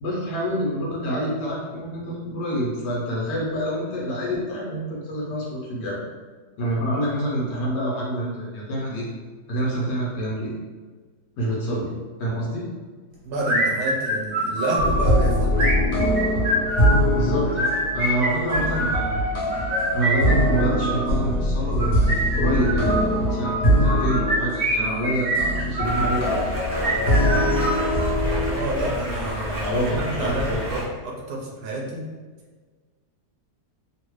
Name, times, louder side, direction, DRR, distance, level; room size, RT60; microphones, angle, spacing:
voice 1, 0.0-6.0 6.6-9.1 9.5-10.5 11.4-11.9 12.2-12.7 17.1-19.0 19.9-26.7 29.5-30.7, equal, 75° left, -4 dB, 1.5 m, -27 dB
voice 2, 13.2-15.7 28.5-32.0, right 2 dB, 75° right, -2 dB, 1.1 m, -29 dB
sound 1, 13.4-15.0 15.5-17.0 17.5-19.0 19.5-21.1 21.7-23.1 23.8-26.1 26.7-28.2, equal, 45° right, 0.5 m, -25 dB
sound 2, 14.8-28.5, equal, 55° left, 1.4 m, -22 dB
Stream, 25.8-30.8, left 1 dB, 25° right, 1.0 m, -30 dB
3.2 x 2.5 x 3.1 m, 1.4 s
omnidirectional pair, 1.9 m